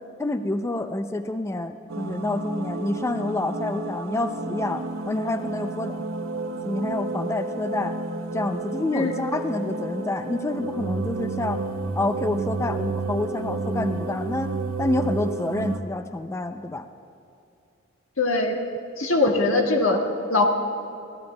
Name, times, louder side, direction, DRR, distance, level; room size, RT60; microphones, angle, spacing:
voice 1, 0.2-6.0 6.6-7.9 8.3-11.6 12.0-14.5 14.8-16.9, left 2 dB, 15° left, 8 dB, 0.3 m, -28 dB
sound 1, 1.9-15.8, right 3 dB, 85° right, 0.7 m, -31 dB
voice 2, 18.2-18.6 19.0-20.4, left 2 dB, 90° left, 2 dB, 1.4 m, -21 dB
23.5 x 16.0 x 2.2 m, 2.6 s
head